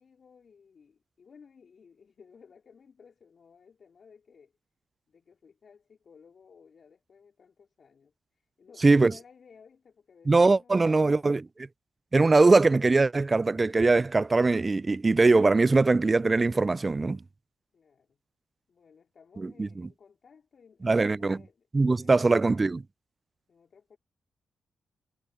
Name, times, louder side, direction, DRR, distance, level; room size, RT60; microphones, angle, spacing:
voice 1, 0.0-4.5 5.1-8.1 8.6-11.3 17.7-18.2 18.7-22.9 23.5-24.0, left 6 dB, 60° left, 3.9 m, -57 dB
voice 2, 10.3-11.4 12.1-17.2 19.4-19.7 20.8-21.4 21.7-22.8, right 3 dB, 35° right, 0.4 m, -21 dB
supercardioid pair, 45°, 0 cm